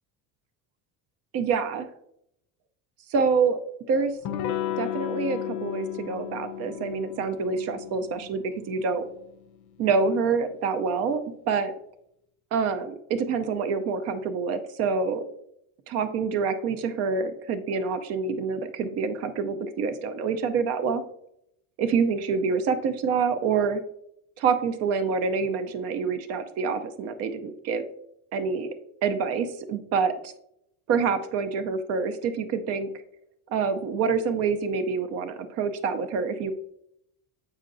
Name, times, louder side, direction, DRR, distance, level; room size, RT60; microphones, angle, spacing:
voice 1, 1.3-1.9 3.1-3.6 3.9-4.1 4.8-9.1 9.8-11.7 12.5-15.2 15.9-21.0 21.8-23.8 24.4-27.8 28.3-28.7 29.0-30.3 30.9-32.9 33.5-36.5, right 5 dB, 40° right, 10 dB, 0.5 m, -26 dB
Electric guitar / Strum, 4.2-9.6, left 11 dB, 55° left, 0.5 m, -34 dB
7.4 x 5.7 x 2.5 m, 0.76 s
cardioid pair, 180°, 38 cm